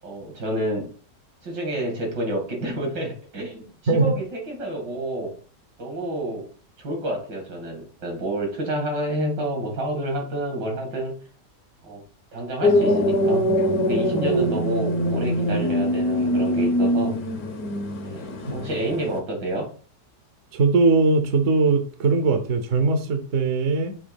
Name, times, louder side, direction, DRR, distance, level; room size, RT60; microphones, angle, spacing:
voice 1, 0.0-0.9 1.4-5.4 5.8-6.5 6.8-11.2 11.8-12.0 12.3-17.2 18.0-19.7, right 1 dB, 80° right, 2.9 m, -29 dB
sound 1, 12.6-19.2, equal, 60° left, 1.5 m, -23 dB
voice 2, 20.5-24.0, right 4 dB, 50° right, 1.1 m, -20 dB
7.1 x 3.1 x 5.2 m
omnidirectional pair, 1.9 m